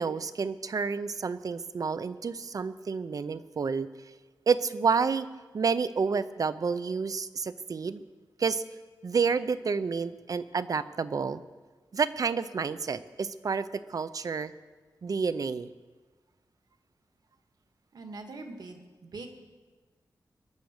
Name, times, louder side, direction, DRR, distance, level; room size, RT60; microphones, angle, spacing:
voice 1, 0.0-3.9 4.5-5.3 5.5-8.0 8.4-8.6 9.0-11.4 11.9-14.5 15.0-15.7, right 5 dB, 55° right, 14 dB, 0.6 m, -29 dB
voice 2, 17.9-19.3, right 3 dB, 70° right, 5 dB, 1.7 m, -43 dB
23.0 x 8.3 x 6.6 m, 1.3 s
wide cardioid pair, 135°, 7 cm